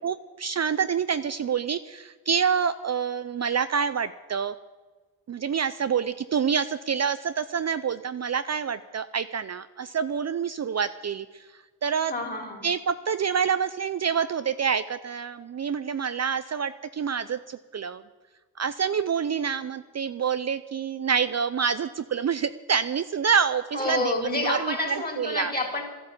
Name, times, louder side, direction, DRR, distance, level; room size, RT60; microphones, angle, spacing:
voice 1, 0.0-4.5 5.3-11.5 11.8-12.1 12.6-18.0 18.6-25.5, right 6 dB, 45° right, 12 dB, 0.5 m, -27 dB
voice 2, 12.1-12.7 23.7-25.8, left 2 dB, 25° left, 2 dB, 3.8 m, -28 dB
13.0 x 11.5 x 8.4 m, 1.3 s
cardioid pair, 95°, 38 cm